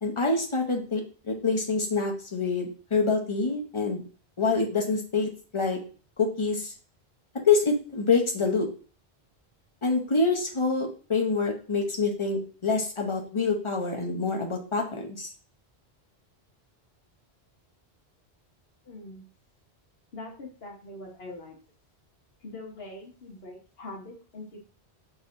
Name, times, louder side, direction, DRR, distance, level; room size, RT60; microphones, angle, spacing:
voice 1, 0.0-4.0 4.4-5.8 6.2-6.7 7.5-8.7 9.8-15.3, left 4 dB, 30° left, 1 dB, 0.9 m, -26 dB
voice 2, 18.8-19.2 20.1-21.6 22.4-24.6, left 2 dB, 70° left, -1 dB, 1.5 m, -42 dB
4.7 x 4.0 x 2.6 m, 0.39 s
omnidirectional pair, 1.1 m